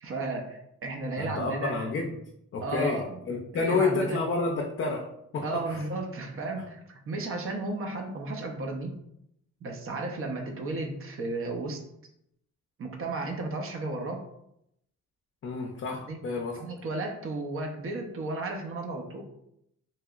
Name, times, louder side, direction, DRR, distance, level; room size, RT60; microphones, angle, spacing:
voice 1, 0.0-1.9 2.6-3.2 3.5-4.2 5.4-9.0 9.6-11.8 12.8-14.2 16.0-16.2 16.5-19.2, right 2 dB, 45° right, 3 dB, 0.7 m, -34 dB
voice 2, 1.2-2.1 2.5-5.0 5.3-5.8 15.4-16.5, left 4 dB, 45° left, 0 dB, 0.5 m, -29 dB
3.0 x 2.8 x 2.3 m, 0.78 s
cardioid pair, 90°, 30 cm